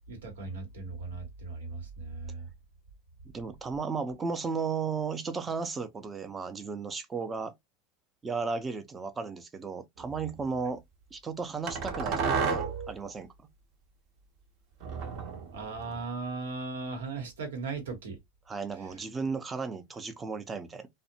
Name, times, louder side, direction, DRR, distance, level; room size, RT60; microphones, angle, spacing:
voice 1, 0.1-2.5 15.5-18.2 18.8-19.0, right 4 dB, 90° right, 1.0 m, -38 dB
voice 2, 3.3-7.5 8.2-10.8 11.1-12.2 12.5-13.3 18.5-20.9, right 5 dB, 20° right, 0.5 m, -34 dB
sound 1, 10.0-10.3 11.7-12.9 14.8-16.0, right 5 dB, 55° right, 0.8 m, -32 dB
2.5 x 2.1 x 2.7 m
supercardioid pair, 115°, 0 cm